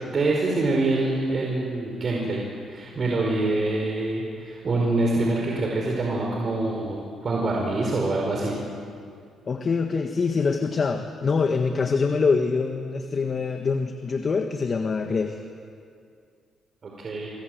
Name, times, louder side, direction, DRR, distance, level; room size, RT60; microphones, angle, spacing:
voice 1, 0.1-2.4 2.7-8.6 16.8-17.3, right 2 dB, 45° right, -1 dB, 5.0 m, -25 dB
voice 2, 9.5-15.4, left 4 dB, 40° left, 5 dB, 1.6 m, -24 dB
27.0 x 24.0 x 8.0 m, 2.3 s
cardioid pair, 90°, 0 cm